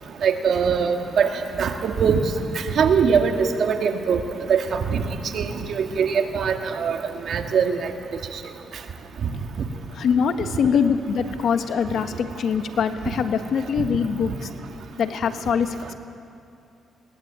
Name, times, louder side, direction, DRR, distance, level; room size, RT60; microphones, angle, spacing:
voice 1, 0.2-1.3 1.6-2.2 2.8-4.2 4.5-5.0 5.3-7.0 7.3-7.9, right 6 dB, 60° right, 4 dB, 2.1 m, -21 dB
voice 2, 9.9-14.5 15.0-15.9, left 6 dB, 65° left, 8 dB, 1.5 m, -23 dB
21.5 x 19.0 x 9.0 m, 2.6 s
cardioid pair, 90°, 0 cm